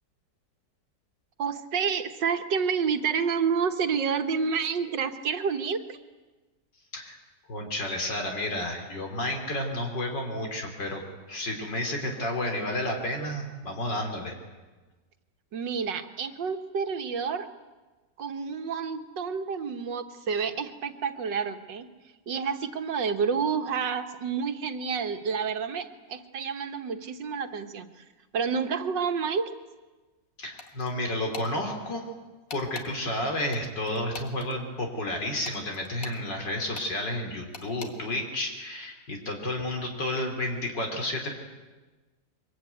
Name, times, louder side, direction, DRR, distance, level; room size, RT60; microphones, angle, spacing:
voice 1, 1.4-6.0 15.5-17.5 18.2-21.9 22.3-28.0 28.3-29.4, right 6 dB, 75° right, 8 dB, 2.1 m, -29 dB
voice 2, 7.5-11.0 11.3-14.4 30.4-32.0 32.5-41.3, left 1 dB, 75° left, 2 dB, 3.9 m, -31 dB
sound 1, 30.6-30.9 31.3-31.5 32.5-32.9 33.5-34.5 35.4-36.2 36.7-36.9 37.5-37.9, left 4 dB, 50° left, 2.1 m, -42 dB
23.5 x 22.5 x 9.4 m, 1.2 s
omnidirectional pair, 1.9 m